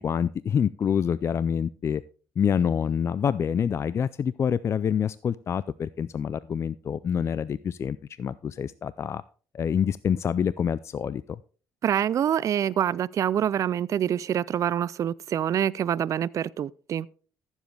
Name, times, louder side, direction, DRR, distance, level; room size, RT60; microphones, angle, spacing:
voice 1, 0.0-2.0 2.4-9.2 9.5-11.4, left 7 dB, 40° left, 0.3 m, -27 dB
voice 2, 11.8-17.1, right 9 dB, 45° right, 0.4 m, -26 dB
14.5 x 7.2 x 3.3 m
cardioid pair, 90°, 7 cm